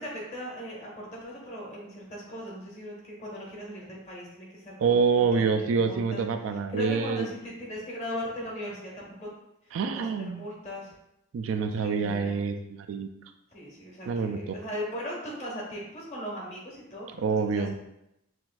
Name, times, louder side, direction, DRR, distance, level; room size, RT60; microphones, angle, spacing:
voice 1, 0.0-6.2 6.7-9.3 9.6-11.0 11.8-12.4 13.5-17.2 17.5-17.7, equal, 35° left, -3 dB, 1.1 m, -38 dB
voice 2, 4.8-7.3 9.7-10.5 11.3-13.1 14.1-14.4 17.2-17.7, right 5 dB, 75° right, 7 dB, 0.3 m, -26 dB
5.8 x 2.5 x 2.3 m, 0.86 s
head